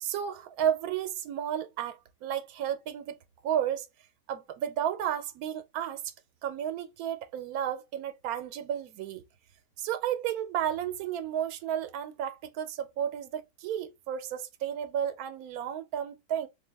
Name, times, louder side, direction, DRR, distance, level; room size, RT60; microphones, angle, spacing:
voice 1, 0.0-3.9 4.3-6.1 6.4-9.2 9.8-16.5, right 10 dB, 80° right, 1.1 m, -32 dB
3.3 x 2.5 x 3.3 m
omnidirectional pair, 1.5 m